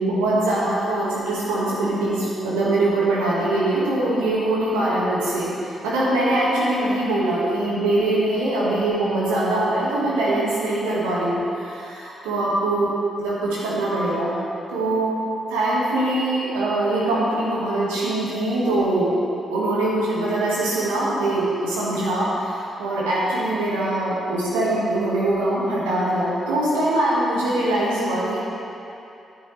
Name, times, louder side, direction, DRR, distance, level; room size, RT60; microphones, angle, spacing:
voice 1, 0.0-12.9 13.2-14.4 14.7-15.1 15.5-19.2 19.5-28.4, right 1 dB, 85° right, -7 dB, 1.7 m, -22 dB
12.0 x 9.7 x 3.3 m, 2.7 s
hypercardioid pair, 40°, 0 cm